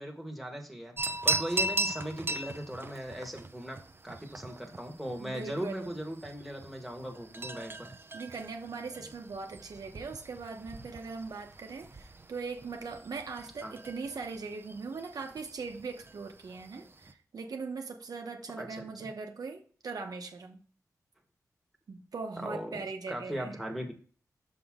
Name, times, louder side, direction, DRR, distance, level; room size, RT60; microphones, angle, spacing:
voice 1, 0.0-7.9 13.6-13.8 18.6-19.1 22.4-23.9, equal, ahead, 2 dB, 1.6 m, -39 dB
sound 1, 1.0-17.1, right 3 dB, 35° right, 0.6 m, -39 dB
voice 2, 5.2-5.9 8.1-20.6 21.9-23.5, right 4 dB, 75° right, 4 dB, 1.0 m, -40 dB
6.2 x 5.3 x 3.7 m, 0.42 s
wide cardioid pair, 75°, 6 cm